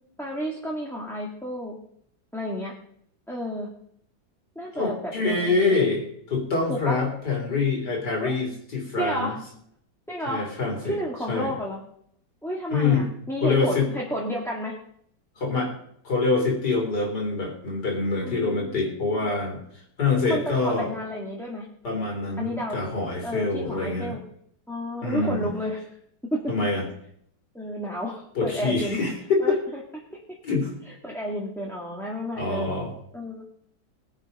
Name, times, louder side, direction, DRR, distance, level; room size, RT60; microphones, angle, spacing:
voice 1, 0.2-1.7 2.3-2.7 3.3-3.7 4.6-5.9 6.7-7.0 8.2-8.3 9.0-9.4 10.1-10.5 10.8-11.8 12.4-14.8 18.2-19.3 20.3-21.7 22.4-22.8 23.2-24.2 24.7-25.9 26.3-26.5 27.5-29.0 29.4-29.5 30.1-30.2 30.9-32.7 33.1-33.5, equal, ahead, -4 dB, 1.9 m, -31 dB
voice 2, 4.7-6.0 6.3-9.3 10.3-11.0 11.3-11.5 12.7-13.1 13.4-13.9 15.4-15.7 16.0-19.6 20.0-20.9 21.8-24.2 25.0-25.5 26.5-26.8 28.4-29.6 30.4-30.7 32.3-32.9, left 3 dB, 60° left, 1 dB, 4.4 m, -25 dB
19.5 x 8.1 x 5.5 m, 0.68 s
omnidirectional pair, 2.0 m